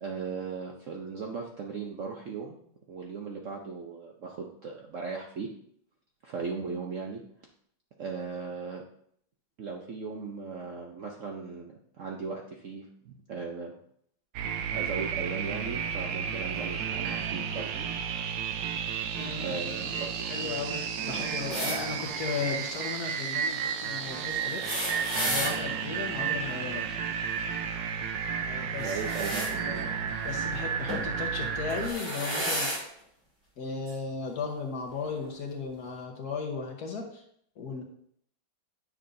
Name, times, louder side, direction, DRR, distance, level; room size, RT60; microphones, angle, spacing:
voice 1, 0.0-2.6 2.9-5.5 6.2-7.2 8.0-8.8 9.6-13.7 14.7-17.9 19.0-19.1 19.4-20.6 21.1-21.3 28.8-29.9, right 5 dB, 60° right, 0 dB, 0.8 m, -37 dB
sound 1, 14.3-31.9, right 7 dB, 75° right, 1.3 m, -32 dB
voice 2, 19.2-19.9 20.2-26.9 28.4-29.0 29.6-29.8 30.2-32.7 33.6-37.2 37.6-37.8, left 5 dB, 60° left, 2 dB, 1.5 m, -36 dB
sound 2, 21.5-21.8 24.4-25.5 28.8-29.5 30.9-31.1 31.7-32.8 33.9-34.0 35.2-35.3, equal, 15° right, 2.8 m, -32 dB
9.8 x 6.1 x 2.6 m, 0.66 s
omnidirectional pair, 2.1 m